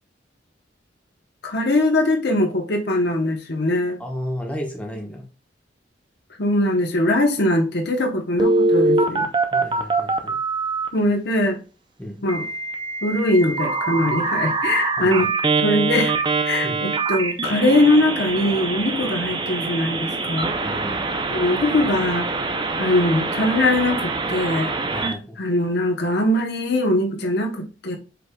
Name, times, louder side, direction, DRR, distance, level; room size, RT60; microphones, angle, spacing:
voice 1, 1.4-4.0 6.4-9.3 10.9-11.6 12.2-12.4 13.0-15.3 15.6-16.2 16.4-20.5 21.3-22.3 22.8-24.7 25.0-25.1 25.4-28.0, left 1 dB, 65° left, 0.9 m, -21 dB
voice 2, 4.0-5.3 9.5-10.4 12.0-12.2 15.0-15.3 16.6-16.8 20.6-21.0 24.9-25.4, equal, 5° left, 1.0 m, -33 dB
Telephone, 8.4-10.9 12.3-25.1, right 3 dB, 25° right, 0.5 m, -24 dB
5.3 x 4.3 x 2.2 m
head